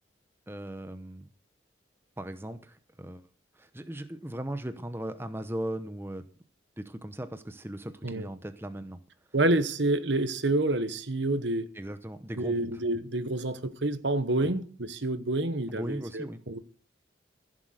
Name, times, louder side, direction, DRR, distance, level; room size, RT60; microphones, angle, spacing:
voice 1, 0.5-1.3 2.2-3.2 3.6-6.3 6.8-9.0 11.7-12.7 14.4-14.5 15.7-16.4, right 1 dB, 10° right, 0.8 m, -38 dB
voice 2, 9.3-11.7 12.4-16.6, right 2 dB, 70° right, 1.2 m, -28 dB
15.0 x 7.6 x 6.5 m
head